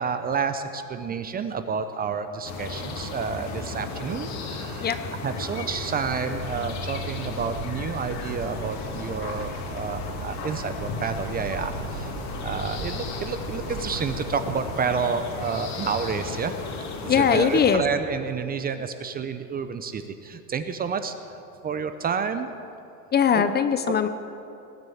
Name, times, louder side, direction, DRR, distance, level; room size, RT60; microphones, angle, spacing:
voice 1, 0.0-4.9 5.2-22.5 23.3-23.4 23.9-24.0, right 6 dB, 20° right, 10 dB, 0.6 m, -30 dB
sound 1, 2.4-17.8, left 3 dB, 40° left, 2.3 m, -34 dB
Bird, 6.0-14.8, right 5 dB, 90° right, 2.3 m, -39 dB
voice 2, 17.1-17.8 23.1-24.1, left 7 dB, 25° left, 10 dB, 0.7 m, -20 dB
19.0 x 7.8 x 8.5 m, 2.8 s
supercardioid pair, 125°, 41 cm